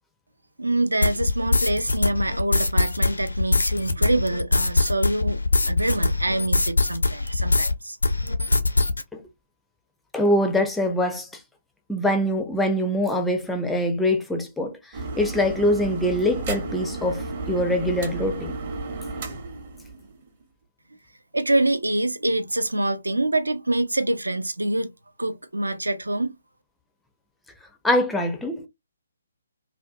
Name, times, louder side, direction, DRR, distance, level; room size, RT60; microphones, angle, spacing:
voice 1, 0.6-8.0 21.3-24.9 25.2-26.3, right 1 dB, 75° right, 0.4 m, -25 dB
sound 1, 1.0-7.7 8.0-9.0, left 3 dB, 70° left, 0.5 m, -22 dB
voice 2, 10.1-11.4 11.9-18.5 27.8-28.7, left 1 dB, 5° left, 0.4 m, -24 dB
sound 2, 14.9-20.4, right 3 dB, 35° right, 0.7 m, -33 dB
2.5 x 2.1 x 2.4 m
figure-of-eight pair, 135°, 0 cm